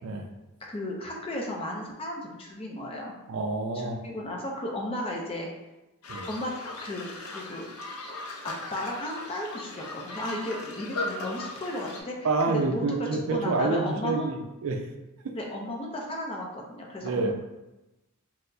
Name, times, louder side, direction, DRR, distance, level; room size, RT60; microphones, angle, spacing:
voice 1, 0.6-3.1 3.7-5.5 6.3-6.5 6.8-7.7 8.1-8.2 8.4-12.9 13.1-14.3 15.4-17.3, left 1 dB, 25° left, 0 dB, 0.4 m, -35 dB
voice 2, 3.3-4.0 6.1-6.3 12.2-14.9 17.0-17.3, right 3 dB, 65° right, 4 dB, 0.4 m, -27 dB
sound 1, 6.0-12.0, left 2 dB, 85° left, 0.6 m, -38 dB
4.3 x 2.0 x 2.6 m, 1.0 s
head